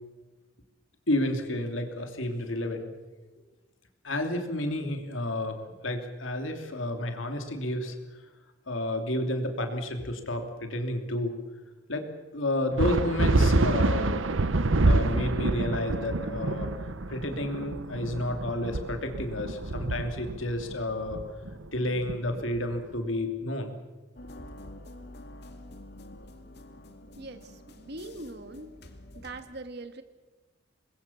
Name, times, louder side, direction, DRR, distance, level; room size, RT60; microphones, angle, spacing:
voice 1, 1.1-2.8 4.0-5.6 5.8-8.0 8.7-11.4 11.9-12.1 12.3-14.1 14.8-16.7 17.1-21.2 21.7-23.7 24.4-24.5, left 1 dB, 85° left, 5 dB, 2.9 m, -31 dB
sound 1, 12.8-22.7, right 2 dB, 85° right, 1.0 m, -27 dB
sound 2, 24.2-29.4, left 1 dB, 55° left, 2.3 m, -47 dB
voice 2, 27.2-28.7 29.2-30.0, right 2 dB, 55° right, 9 dB, 1.7 m, -42 dB
25.5 x 21.0 x 7.2 m, 1.2 s
head